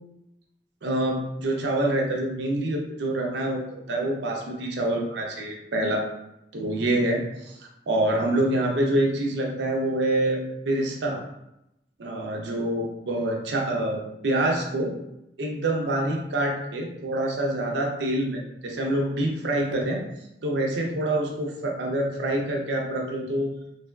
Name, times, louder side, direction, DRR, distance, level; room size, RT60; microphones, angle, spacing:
voice 1, 0.8-6.1 6.5-7.6 7.9-11.2 12.0-14.9 15.4-20.0 20.4-23.5, right 1 dB, 85° right, 1 dB, 0.5 m, -26 dB
3.3 x 2.2 x 2.2 m, 0.85 s
head